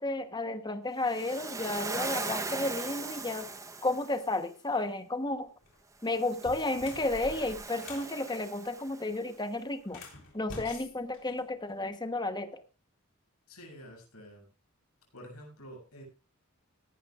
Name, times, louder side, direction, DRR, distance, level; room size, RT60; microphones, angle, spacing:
voice 1, 0.0-3.5 3.8-5.5 6.0-10.0 10.3-12.6, left 2 dB, 20° left, 9 dB, 1.1 m, -32 dB
Waves surf, 1.1-4.3 6.1-9.2, right 3 dB, 15° right, 1.0 m, -39 dB
sound 1, 5.5-5.8 6.3-8.1 9.8-11.9, left 2 dB, 60° left, 3.8 m, -47 dB
voice 2, 13.5-14.5 15.1-16.0, equal, 80° left, 0 dB, 7.5 m, -48 dB
17.5 x 12.0 x 2.5 m, 0.31 s
head